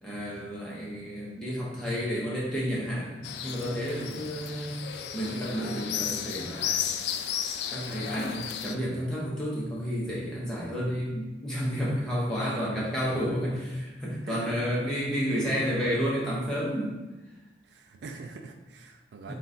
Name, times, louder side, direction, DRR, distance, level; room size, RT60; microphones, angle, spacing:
voice 1, 0.0-4.8 5.1-6.9 7.7-17.0 19.3-19.4, equal, 5° left, -7 dB, 0.9 m, -31 dB
sound 1, 3.2-8.8, left 8 dB, 65° left, 0.3 m, -34 dB
voice 2, 3.9-4.3 12.4-13.0 14.2-14.8 17.6-19.3, right 3 dB, 75° right, 5 dB, 0.4 m, -43 dB
3.9 x 2.4 x 4.1 m, 1.1 s
head